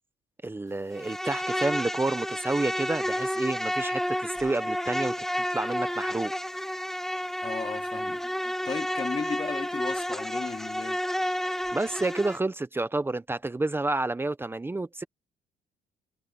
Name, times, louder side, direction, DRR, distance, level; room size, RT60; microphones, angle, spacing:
voice 1, 0.4-5.1 5.5-6.3 11.7-15.0, right 2 dB, 15° right, 0.8 m, -29 dB
Insect, 0.9-12.4, equal, ahead, 1.9 m, -31 dB
voice 2, 7.4-8.2 8.6-11.0, left 5 dB, 30° left, 2.7 m, -35 dB
cardioid pair, 110°, 17 cm